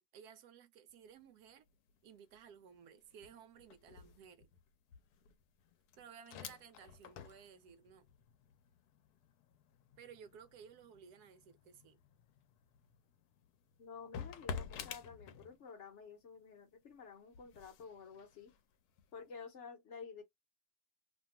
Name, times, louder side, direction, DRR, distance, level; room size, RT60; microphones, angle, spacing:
voice 1, 0.0-1.7 2.0-4.5 6.0-8.1 10.0-12.0, right 7 dB, 90° right, 1.1 m, -57 dB
sound 1, 0.9-1.2 1.5-15.9 16.3-19.4, left 6 dB, 85° left, 1.1 m, -52 dB
voice 2, 13.8-18.5 19.1-20.2, left 5 dB, 55° left, 0.9 m, -51 dB
2.8 x 2.3 x 2.8 m
omnidirectional pair, 1.7 m